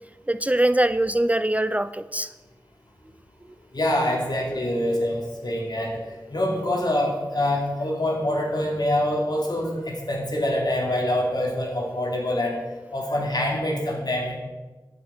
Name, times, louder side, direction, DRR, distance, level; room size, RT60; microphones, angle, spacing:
voice 1, 0.3-2.3, right 1 dB, 20° right, 14 dB, 0.3 m, -22 dB
voice 2, 3.7-6.0 6.3-12.6 12.9-14.4, left 1 dB, 60° left, -1 dB, 2.8 m, -25 dB
10.5 x 7.1 x 6.0 m, 1.2 s
wide cardioid pair, 45°, 8 cm